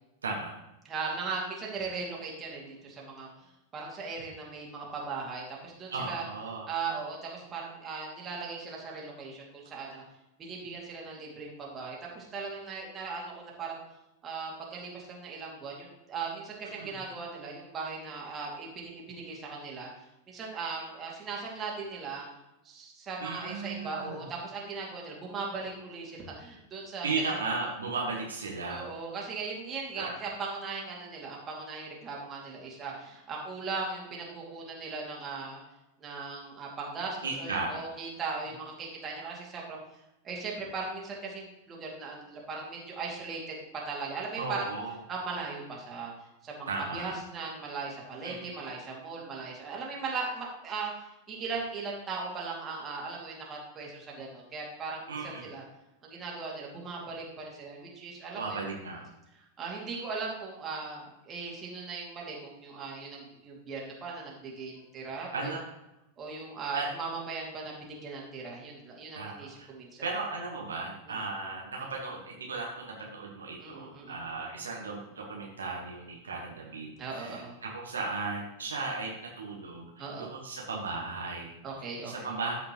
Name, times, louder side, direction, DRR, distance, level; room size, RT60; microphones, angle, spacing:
voice 1, 0.2-0.5 5.9-6.7 16.6-17.0 23.2-24.3 27.0-28.9 29.9-30.3 37.2-37.8 44.3-45.0 46.7-47.2 48.2-48.6 55.1-55.5 58.3-59.0 65.3-65.6 66.7-66.9 69.1-69.7 70.0-81.6 82.0-82.5, right 3 dB, 70° right, -1 dB, 1.3 m, -36 dB
voice 2, 0.9-3.3 3.7-6.2 6.7-10.0 10.4-13.8 14.2-19.9 20.3-22.2 22.6-27.3 28.7-35.6 36.0-39.8 40.2-43.6 43.9-44.7 45.1-46.1 46.4-50.9 51.3-55.6 56.0-58.6 59.6-65.5 66.2-70.0 71.1-71.2 73.6-74.2 77.0-77.6 80.0-80.3 81.6-82.3, right 4 dB, 25° right, -2 dB, 2.4 m, -38 dB
13.5 x 5.1 x 3.1 m, 0.93 s
figure-of-eight pair, 90°, 0 cm